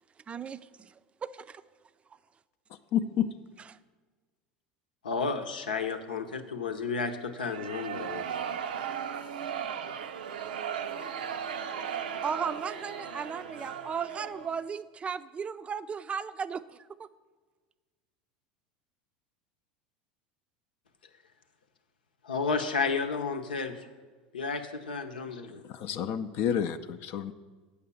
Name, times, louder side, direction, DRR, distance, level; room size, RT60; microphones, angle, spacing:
voice 1, 0.3-1.6 12.2-17.1, right 6 dB, 25° right, 14 dB, 0.4 m, -36 dB
voice 2, 2.9-3.3 25.7-27.3, left 9 dB, 55° left, 10 dB, 0.5 m, -29 dB
voice 3, 5.0-8.2 22.2-23.8 24.3-25.7, left 4 dB, 90° left, 6 dB, 0.9 m, -32 dB
sound 1, 7.4-14.6, right 8 dB, 85° right, 0.5 m, -36 dB
Wind instrument woodwind instrument, 11.0-15.1, left 3 dB, 10° left, 0.8 m, -52 dB
8.5 x 6.6 x 7.0 m, 1.4 s
hypercardioid pair, 85°, 5 cm